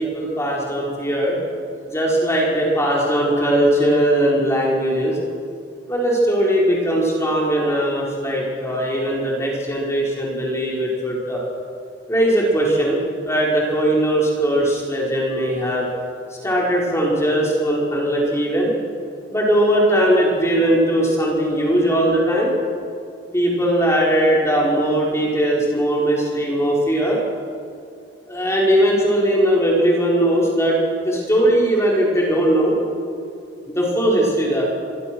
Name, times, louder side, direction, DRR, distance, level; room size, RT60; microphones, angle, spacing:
voice 1, 0.0-1.4 1.8-5.2 5.9-11.4 12.1-15.9 16.4-18.7 19.3-22.5 23.3-27.2 28.3-30.8 31.0-32.7 33.7-34.7, right 1 dB, 15° left, -4 dB, 5.3 m, -19 dB
25.5 x 21.5 x 6.4 m, 2.4 s
head